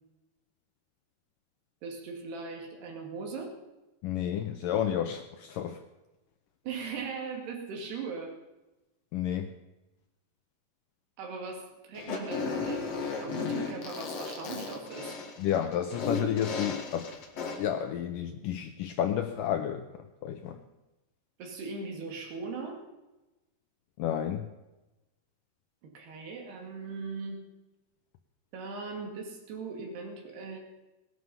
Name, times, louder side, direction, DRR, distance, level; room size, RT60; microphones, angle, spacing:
voice 1, 1.8-3.6 6.6-8.4 11.2-15.1 21.4-22.8 25.8-27.4 28.5-30.6, right 4 dB, 75° right, 2 dB, 4.4 m, -39 dB
voice 2, 4.0-5.8 9.1-9.5 15.4-17.1 17.6-19.9 20.2-20.6 24.0-24.5, left 10 dB, 85° left, 7 dB, 1.9 m, -31 dB
Fart, 11.9-17.7, left 4 dB, 50° left, 2.3 m, -35 dB
19.0 x 11.5 x 5.6 m, 1.0 s
omnidirectional pair, 4.8 m